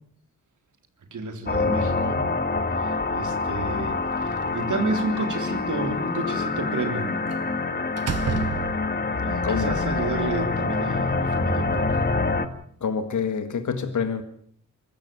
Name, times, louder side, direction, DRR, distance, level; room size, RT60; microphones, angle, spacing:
voice 1, 1.1-2.2 2.7-7.2 9.2-12.0, right 3 dB, 80° right, 3.5 m, -31 dB
sound 1, 1.5-12.5, left 3 dB, 35° left, 1.8 m, -26 dB
Slam, 4.1-5.2 7.3-7.5 8.0-9.2, right 7 dB, 55° right, 1.2 m, -31 dB
voice 2, 9.4-9.9 12.8-14.2, left 6 dB, 80° left, 1.7 m, -27 dB
24.0 x 13.5 x 9.3 m
wide cardioid pair, 105°, 30 cm